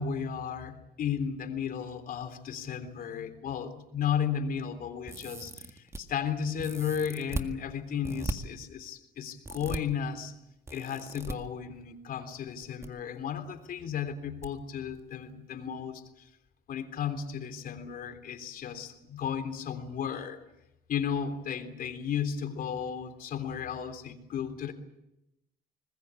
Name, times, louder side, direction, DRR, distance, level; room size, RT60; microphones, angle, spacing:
voice 1, 0.0-10.3 10.7-16.0 16.7-20.4 20.9-24.7, left 7 dB, 60° left, 8 dB, 3.5 m, -34 dB
sound 1, 5.1-6.0 6.6-7.5 8.0-8.3 9.4-9.8 10.7-11.3 12.5-12.9 13.1-13.2 14.4-14.5 14.9-15.0, right 2 dB, 15° right, 1.8 m, -37 dB
25.0 x 20.5 x 8.4 m, 0.88 s
cardioid pair, 110°, 17 cm